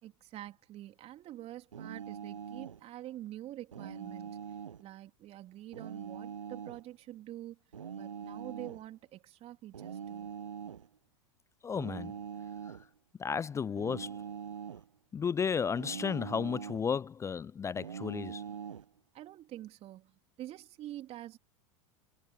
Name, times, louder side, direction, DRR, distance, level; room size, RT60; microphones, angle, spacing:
voice 1, 0.0-4.4 4.8-7.6 7.9-10.3 19.1-21.4, right 14 dB, 40° right, 3.4 m, -46 dB
sound 1, 1.7-2.8 3.7-4.8 5.7-6.9 7.7-8.8 9.7-10.9 11.7-12.9 13.8-14.9 15.8-16.9 17.8-18.9, right 8 dB, 80° right, 0.6 m, -43 dB
voice 2, 11.6-12.1 12.7-12.8 13.2-14.2 15.1-18.4, left 6 dB, 20° left, 0.5 m, -33 dB
figure-of-eight pair, 85°, 16 cm